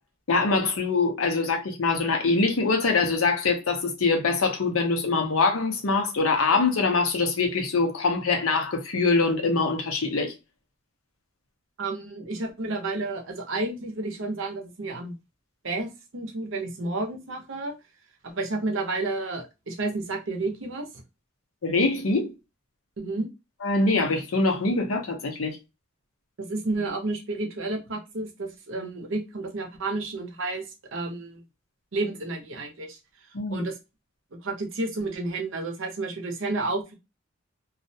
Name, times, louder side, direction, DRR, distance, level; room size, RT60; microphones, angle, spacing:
voice 1, 0.3-10.3 21.6-22.3 23.6-25.6 33.3-33.7, left 3 dB, 90° left, 0.7 m, -24 dB
voice 2, 11.8-15.1 15.6-15.9 16.1-17.7 18.3-20.9 23.0-23.3 26.4-30.6 30.9-31.4 31.9-33.0 33.5-33.7 34.4-37.0, right 2 dB, 65° right, 0.7 m, -31 dB
2.4 x 2.0 x 2.7 m
head